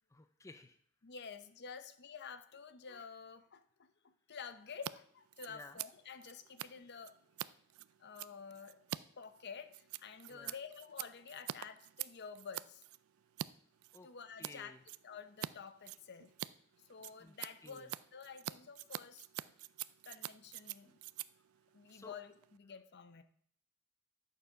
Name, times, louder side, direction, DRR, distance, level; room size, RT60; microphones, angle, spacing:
voice 1, 0.1-0.8 5.5-5.8 10.3-10.6 13.9-14.1 14.4-14.8 17.2-17.4 17.6-17.9 21.9-22.2, left 2 dB, 15° left, 9 dB, 0.4 m, -54 dB
voice 2, 1.0-7.2 8.0-8.8 9.2-12.8 14.0-14.7 15.0-16.3 16.9-19.3 20.0-21.0 21.7-23.2, left 6 dB, 55° left, 11 dB, 0.7 m, -50 dB
Scissors, 4.7-4.9 5.2-13.5 13.8-14.5 14.9-15.5 15.8-22.6, right 13 dB, 85° right, 0.4 m, -46 dB
11.0 x 6.8 x 5.6 m, 0.63 s
head